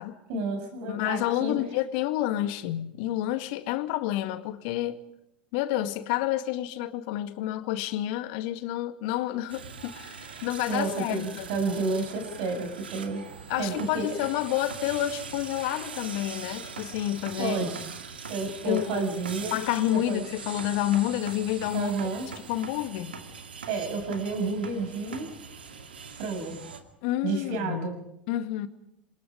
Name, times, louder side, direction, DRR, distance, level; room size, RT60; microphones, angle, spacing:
voice 1, 0.3-1.6 10.3-13.2 13.6-14.2 17.4-17.7 18.3-19.6 19.9-20.2 21.7-22.3 23.7-25.3 26.2-26.6 27.2-27.9, right 3 dB, 60° right, 6.9 m, -30 dB
voice 2, 0.9-5.0 5.5-11.5 13.5-17.6 18.7-19.0 19.5-21.9 22.5-23.2 27.0-27.9 28.3-28.7, left 13 dB, 60° left, 2.1 m, -29 dB
sound 1, 9.5-26.8, right 5 dB, 80° right, 2.5 m, -42 dB
27.5 x 25.0 x 5.2 m
figure-of-eight pair, 75°, 5 cm